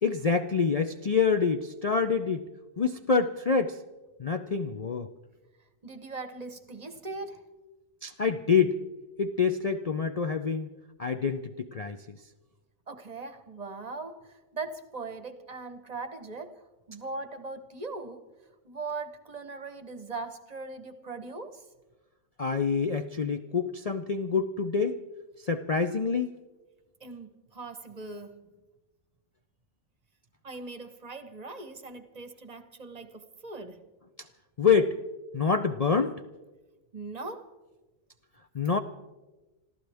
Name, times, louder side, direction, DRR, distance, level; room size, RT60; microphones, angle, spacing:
voice 1, 0.0-2.5 2.8-3.8 4.2-5.1 8.0-8.8 9.2-10.7 11.0-12.2 22.4-25.0 25.4-26.3 34.6-35.0 35.3-36.1 38.5-38.8, left 5 dB, 55° left, 0.4 m, -26 dB
voice 2, 5.8-7.4 12.9-18.2 18.6-21.6 27.0-28.5 30.4-33.8 36.9-37.5, right 3 dB, 35° right, 1.0 m, -40 dB
27.0 x 14.5 x 3.5 m
omnidirectional pair, 1.4 m